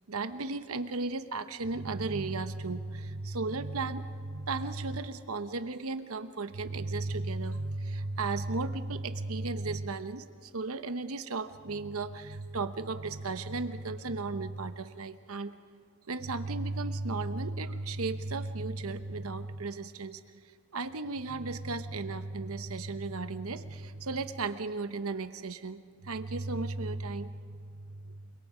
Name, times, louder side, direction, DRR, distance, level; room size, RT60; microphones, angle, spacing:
voice 1, 0.1-15.5 16.1-20.2 20.7-28.3, right 3 dB, 75° right, 10 dB, 1.0 m, -35 dB
29.5 x 23.0 x 5.1 m, 2.2 s
head